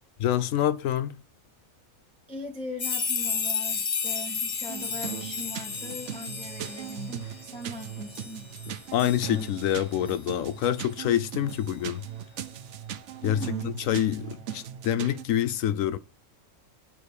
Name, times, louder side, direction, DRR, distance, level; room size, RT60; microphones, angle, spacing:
voice 1, 0.2-1.2 8.9-12.0 13.2-16.0, left 11 dB, 80° left, 1.0 m, -26 dB
voice 2, 2.3-8.5 13.2-13.8, left 2 dB, 5° left, 1.4 m, -40 dB
sound 1, 2.8-9.7 10.1-10.2 11.5-11.6, left 5 dB, 50° left, 0.3 m, -33 dB
sound 2, 4.7-15.2, right 9 dB, 65° right, 1.0 m, -39 dB
9.4 x 4.3 x 4.9 m
omnidirectional pair, 1.4 m